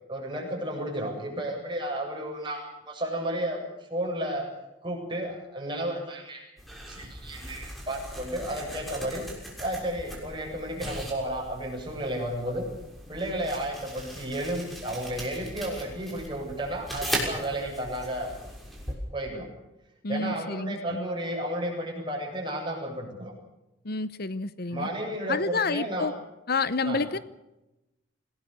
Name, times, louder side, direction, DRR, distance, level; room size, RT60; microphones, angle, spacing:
voice 1, 0.1-4.5 4.8-6.4 6.9-9.3 9.6-12.7 13.1-18.3 19.1-19.5 20.1-23.3 24.7-26.1 26.8-27.0, right 1 dB, 25° right, 0 dB, 7.8 m, -32 dB
sound 1, 6.6-19.0, right 1 dB, ahead, 6.3 m, -39 dB
voice 2, 20.0-21.1 23.8-24.9 25.3-26.1 26.5-27.2, left 3 dB, 50° left, 15 dB, 0.8 m, -29 dB
27.5 x 18.5 x 6.9 m, 0.96 s
head